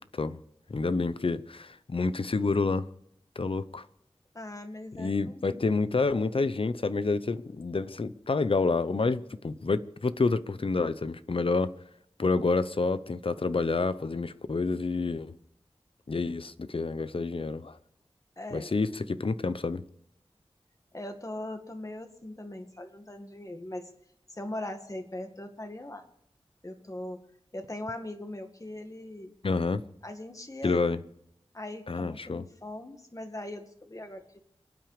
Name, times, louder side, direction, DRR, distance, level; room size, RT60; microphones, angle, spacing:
voice 1, 0.7-2.9 3.4-3.8 5.0-11.7 12.2-15.3 16.1-17.8 18.5-19.8 29.4-29.8 30.6-31.0 31.9-32.4, left 3 dB, 60° left, 0.8 m, -28 dB
voice 2, 4.3-5.8 18.4-18.8 20.9-23.9 24.3-26.0 26.6-27.2 27.5-29.3 30.0-31.0 31.5-34.4, left 1 dB, 30° left, 2.1 m, -40 dB
28.0 x 9.3 x 5.0 m
wide cardioid pair, 55°, 10 cm